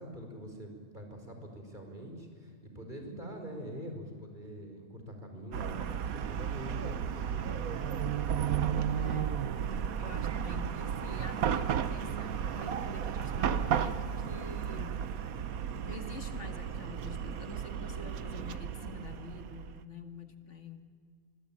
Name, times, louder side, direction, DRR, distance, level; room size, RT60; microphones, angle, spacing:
voice 1, 0.0-7.7, equal, 35° right, 3 dB, 5.2 m, -44 dB
Chatter / Car passing by / Traffic noise roadway noise, 5.5-19.8, right 8 dB, 80° right, 1.3 m, -33 dB
voice 2, 9.0-9.5 10.0-15.0 15.8-20.8, left 4 dB, 55° left, 6 dB, 2.1 m, -47 dB
25.5 x 24.5 x 8.9 m, 2.3 s
omnidirectional pair, 1.5 m